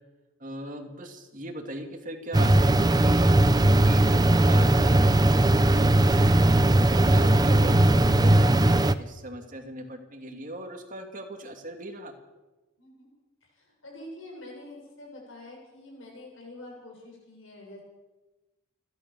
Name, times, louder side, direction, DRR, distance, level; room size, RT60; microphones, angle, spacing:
voice 1, 0.4-3.3 3.7-6.3 6.8-12.1, right 1 dB, 40° right, 4 dB, 2.7 m, -39 dB
sound 1, 2.3-8.9, right 1 dB, 20° right, 0.6 m, -19 dB
voice 2, 12.8-13.1 13.4-17.8, left 1 dB, 65° left, -1 dB, 7.2 m, -46 dB
29.0 x 12.5 x 7.1 m, 1.2 s
head